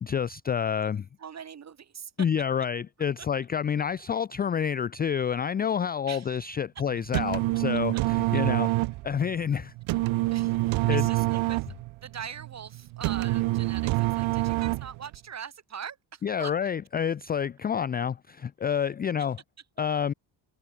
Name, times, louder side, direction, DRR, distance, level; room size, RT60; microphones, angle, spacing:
voice 1, 0.0-1.1 2.2-8.7 9.0-9.7 10.9-11.1 16.2-19.4 19.8-20.1, left 7 dB, 20° left, 0.4 m, -28 dB
voice 2, 1.2-2.1 6.1-6.4 10.3-11.7 12.0-16.5 18.7-18.9, right 7 dB, 35° right, 6.2 m, -42 dB
sound 1, 6.9-15.2, right 20 dB, 80° right, 1.0 m, -27 dB
cardioid pair, 155°, 47 cm